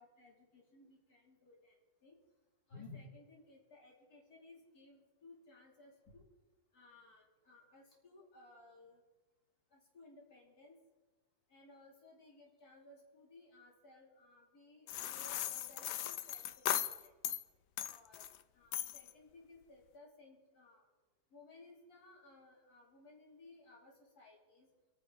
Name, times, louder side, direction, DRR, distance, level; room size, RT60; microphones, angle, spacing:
voice 1, 0.0-1.8 2.0-2.2 2.7-6.2 6.7-9.0 9.7-10.8 11.5-17.1 17.9-18.3 18.5-20.9 21.3-24.7, left 2 dB, 65° left, -2 dB, 3.6 m, -59 dB
sound 1, 14.9-17.4 17.8-18.4 18.7-19.1, left 11 dB, 85° left, 1.3 m, -38 dB
25.0 x 10.0 x 3.9 m, 1.2 s
omnidirectional pair, 1.8 m